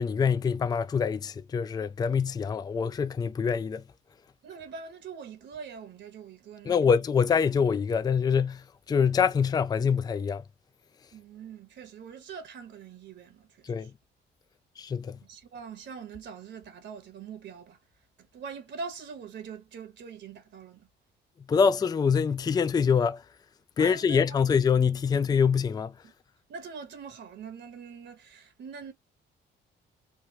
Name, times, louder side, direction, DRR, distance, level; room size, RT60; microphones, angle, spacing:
voice 1, 0.0-3.8 6.7-10.4 13.6-13.9 14.8-15.2 21.5-23.2 23.8-25.9, left 6 dB, 20° left, 0.3 m, -25 dB
voice 2, 4.4-6.8 11.1-13.9 15.2-17.8 18.3-20.9 23.8-24.2 26.0-26.1 26.5-28.9, right 6 dB, 65° right, 1.1 m, -43 dB
3.3 x 2.1 x 2.9 m
cardioid pair, 90°, 20 cm